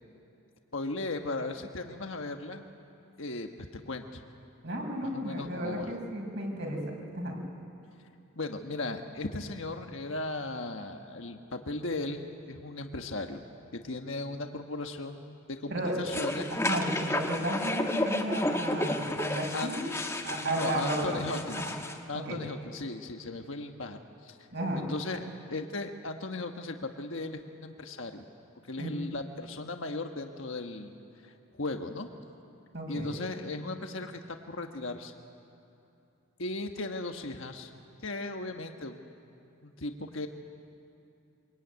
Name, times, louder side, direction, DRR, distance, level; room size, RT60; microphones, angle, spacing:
voice 1, 0.7-2.7 3.2-4.2 5.1-5.9 8.4-13.4 13.7-16.5 19.5-19.7 20.4-21.8 22.1-24.4 24.8-28.2 28.7-30.9 31.2-31.3 31.6-32.1 32.9-35.1 36.4-37.7 38.0-39.0 39.6-40.3, left 2 dB, 65° left, 5 dB, 1.4 m, -37 dB
voice 2, 4.6-6.8 7.1-7.4 15.7-16.0 16.6-19.8 20.2-21.2 21.6-21.7 22.1-22.3 24.5-24.9 28.8-28.9 32.7-33.1, right 1 dB, 55° right, 0 dB, 5.9 m, -33 dB
sound 1, 16.1-22.0, left 1 dB, 15° left, 1.4 m, -32 dB
24.5 x 24.0 x 9.5 m, 2.9 s
head